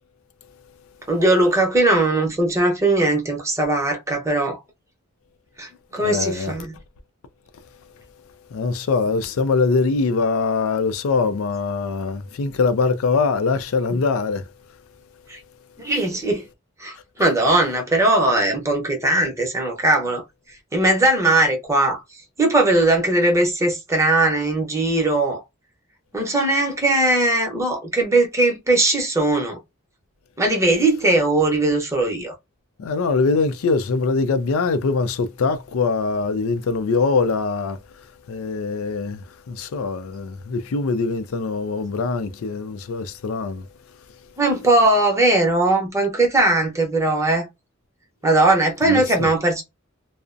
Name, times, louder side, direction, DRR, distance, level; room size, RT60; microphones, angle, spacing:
voice 1, 1.1-4.6 5.6-6.8 13.9-14.0 15.3-15.4 15.8-16.4 16.8-20.2 20.7-22.0 22.4-25.4 26.1-29.6 30.4-32.3 44.4-47.5 48.2-49.6, right 2 dB, 15° right, 0.7 m, -19 dB
voice 2, 6.0-6.5 8.5-14.4 32.8-37.8 38.3-43.7 48.9-49.3, left 4 dB, 85° left, 0.4 m, -23 dB
2.5 x 2.0 x 2.5 m
head